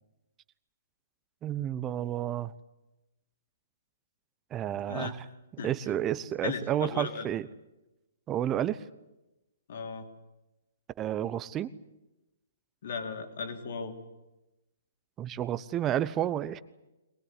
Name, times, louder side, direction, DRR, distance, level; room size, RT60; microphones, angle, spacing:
voice 1, 1.4-2.5 4.5-5.2 5.6-7.5 8.3-8.8 11.0-11.7 15.2-16.6, right 11 dB, 20° right, 16 dB, 0.9 m, -31 dB
voice 2, 6.4-7.3 9.7-10.1 12.8-13.9, left 5 dB, 60° left, 5 dB, 3.2 m, -36 dB
22.5 x 19.5 x 9.8 m, 1.0 s
hypercardioid pair, 135°, 0 cm